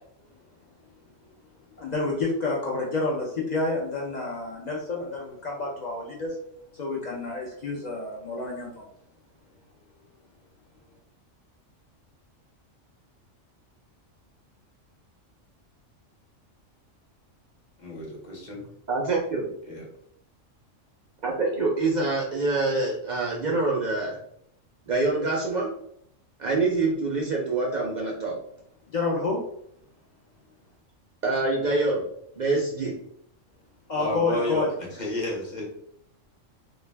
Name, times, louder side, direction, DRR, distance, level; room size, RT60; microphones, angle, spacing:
voice 1, 1.8-6.4 6.7-8.9 28.9-29.4 33.9-34.7, left 3 dB, 70° left, 0.4 m, -29 dB
voice 2, 17.8-18.6 19.6-19.8 33.9-35.6, left 2 dB, 45° left, 0.8 m, -32 dB
voice 3, 18.9-19.5 21.2-24.2 24.9-25.7 26.4-28.4 31.2-32.0 32.4-32.9, right 3 dB, 60° right, 0.4 m, -25 dB
2.3 x 2.2 x 3.2 m
omnidirectional pair, 1.3 m